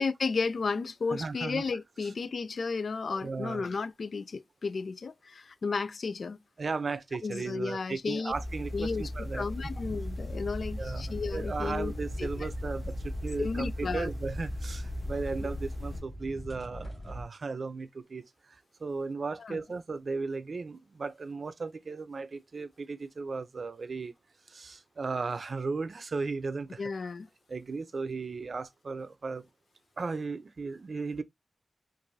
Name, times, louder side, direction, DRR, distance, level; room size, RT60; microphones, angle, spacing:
voice 1, 0.0-6.4 7.2-8.3 8.7-11.9 12.2-12.3 13.4-14.1 15.4-15.5 19.4-19.6 26.8-27.3, left 4 dB, 80° left, 0.3 m, -33 dB
voice 2, 1.1-1.6 3.1-3.7 6.6-9.5 10.8-24.1 24.5-26.8 27.5-29.5 30.0-31.2, right 4 dB, 70° right, 0.5 m, -36 dB
sound 1, 8.3-16.0, left 1 dB, 45° left, 2.0 m, -38 dB
sound 2, 9.6-17.2, equal, 25° left, 2.1 m, -42 dB
4.6 x 2.6 x 2.6 m
wide cardioid pair, 85°, 0 cm